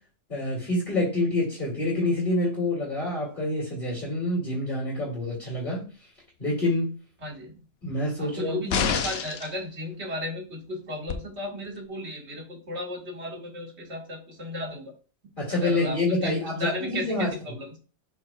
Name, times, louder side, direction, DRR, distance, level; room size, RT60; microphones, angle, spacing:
voice 1, 0.3-5.8 6.4-6.9 7.8-8.9 15.4-17.3, left 2 dB, 45° left, -5 dB, 2.7 m, -27 dB
voice 2, 7.2-7.6 8.2-14.9 15.5-17.8, equal, 60° right, 0 dB, 2.1 m, -35 dB
sound 1, 8.7-9.5 11.1-11.2, left 7 dB, 60° left, 0.8 m, -27 dB
11.0 x 4.5 x 2.3 m, 0.36 s
omnidirectional pair, 1.3 m